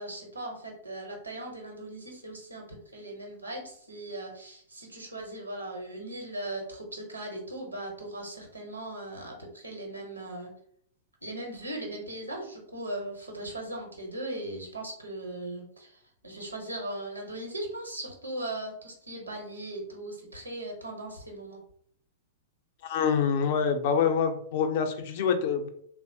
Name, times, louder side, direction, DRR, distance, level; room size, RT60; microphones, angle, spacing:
voice 1, 0.0-10.5 11.2-21.6, right 1 dB, 90° right, 0 dB, 0.9 m, -38 dB
voice 2, 22.8-25.7, left 6 dB, 50° left, 6 dB, 0.4 m, -26 dB
3.2 x 2.0 x 2.7 m, 0.68 s
figure-of-eight pair, 105°, 0 cm